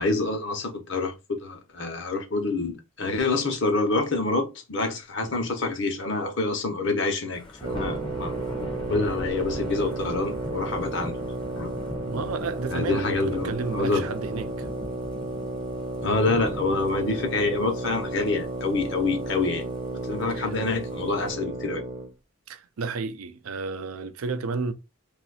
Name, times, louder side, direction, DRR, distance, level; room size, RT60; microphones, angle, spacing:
voice 1, 0.0-8.4 8.9-11.2 11.5-11.7 12.7-14.0 16.0-19.7 20.0-21.8, left 3 dB, 60° left, 0.9 m, -27 dB
Thunder / Rain, 7.3-21.3, left 1 dB, 25° left, 0.6 m, -41 dB
sound 1, 7.6-22.1, right 2 dB, 35° right, 0.7 m, -33 dB
voice 2, 12.1-14.7 20.3-20.5 22.5-24.7, right 4 dB, 85° right, 0.5 m, -32 dB
2.7 x 2.5 x 4.1 m
head